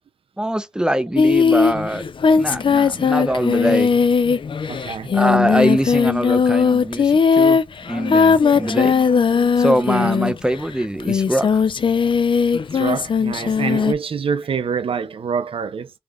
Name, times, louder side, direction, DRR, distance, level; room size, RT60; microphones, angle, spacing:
voice 1, 0.4-2.0 2.4-3.9 5.1-7.6 7.9-8.9 9.6-11.6, right 1 dB, 10° right, 0.6 m, -22 dB
Singing, 1.2-10.5 11.0-13.9, left 5 dB, 60° left, 0.4 m, -18 dB
voice 2, 4.7-5.1 9.9-10.1 12.7-15.9, right 6 dB, 70° right, 0.4 m, -25 dB
3.4 x 2.4 x 3.5 m
cardioid pair, 65°, 10 cm